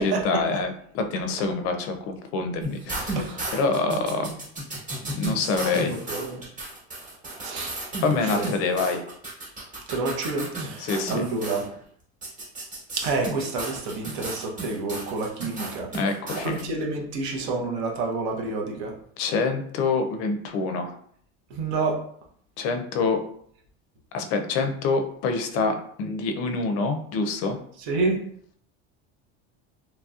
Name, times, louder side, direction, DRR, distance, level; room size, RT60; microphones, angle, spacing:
voice 1, 0.0-3.2 3.5-4.3 5.1-6.0 8.0-9.0 10.8-11.3 15.9-16.6 19.2-20.9 22.6-23.2 24.1-27.6, left 4 dB, 50° left, 6 dB, 0.4 m, -26 dB
sound 1, 2.6-11.6 12.2-16.6, right 2 dB, 25° right, 1.1 m, -34 dB
voice 2, 3.1-3.5 3.9-4.3 5.7-6.4 7.4-7.8 8.1-8.5 9.9-11.6 13.0-15.9 16.4-18.9 21.5-22.0 27.8-28.2, right 3 dB, 85° right, 0 dB, 0.9 m, -29 dB
3.0 x 2.7 x 2.3 m, 0.63 s
cardioid pair, 150°, 32 cm